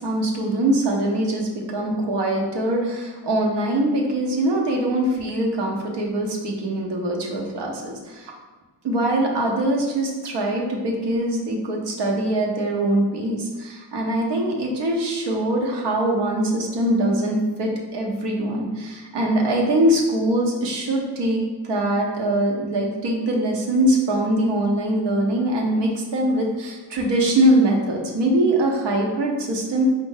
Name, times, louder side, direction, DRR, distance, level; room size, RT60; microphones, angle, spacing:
voice 1, 0.0-8.3 8.8-29.8, right 1 dB, 90° right, 0 dB, 0.9 m, -22 dB
5.1 x 2.5 x 3.9 m, 1.3 s
cardioid pair, 80°, 41 cm